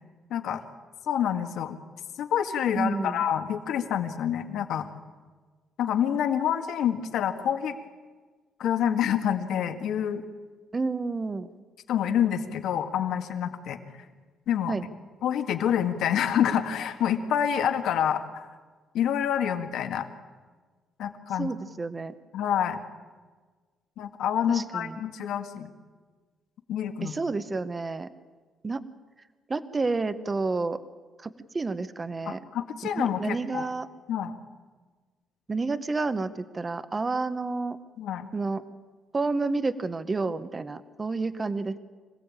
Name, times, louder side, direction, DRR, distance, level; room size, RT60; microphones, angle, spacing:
voice 1, 0.3-0.6 1.1-1.8 2.2-4.9 5.8-7.8 8.6-10.2 11.9-13.8 14.5-14.7 15.2-18.5 18.9-20.1 21.0-21.5 22.3-22.8 24.0-25.7 26.7-27.1 32.3-33.7 34.1-34.3 38.0-38.3, left 9 dB, 70° left, 6 dB, 2.0 m, -27 dB
voice 2, 2.7-3.2 10.7-11.5 14.7-14.8 21.4-22.1 24.5-25.0 27.0-28.1 28.6-28.8 29.5-30.8 31.2-32.4 32.9-33.9 35.5-37.8 38.3-38.6 39.1-41.8, right 3 dB, 20° right, 12 dB, 0.9 m, -30 dB
25.5 x 17.0 x 8.8 m, 1.4 s
cardioid pair, 155°, 0 cm